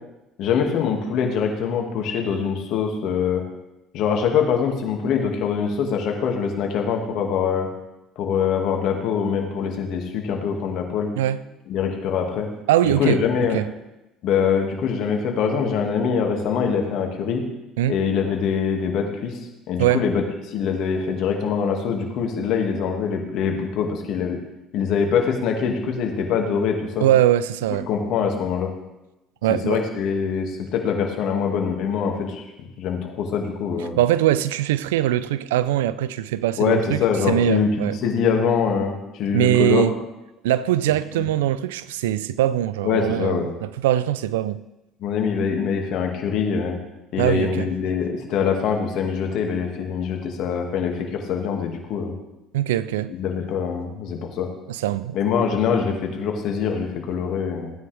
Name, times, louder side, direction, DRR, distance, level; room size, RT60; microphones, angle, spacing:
voice 1, 0.4-3.4 3.9-7.7 8.2-11.1 11.7-12.5 12.8-13.6 14.2-17.4 17.9-19.4 19.7-24.4 24.7-27.1 27.9-28.7 29.5-32.5 32.8-34.0 36.6-39.9 41.2-41.3 42.8-43.5 45.0-46.8 47.1-52.1 53.1-54.5 55.1-57.7, left 6 dB, 65° left, 2.1 m, -24 dB
voice 2, 12.7-13.2 13.5-13.7 17.8-18.0 19.8-20.0 27.0-27.9 29.4-29.8 34.0-37.0 37.3-38.0 39.3-40.0 40.4-44.6 47.2-47.7 52.5-53.1 54.7-55.2, right 12 dB, 80° right, 0.4 m, -21 dB
16.0 x 9.5 x 3.4 m
hypercardioid pair, 60°, 0 cm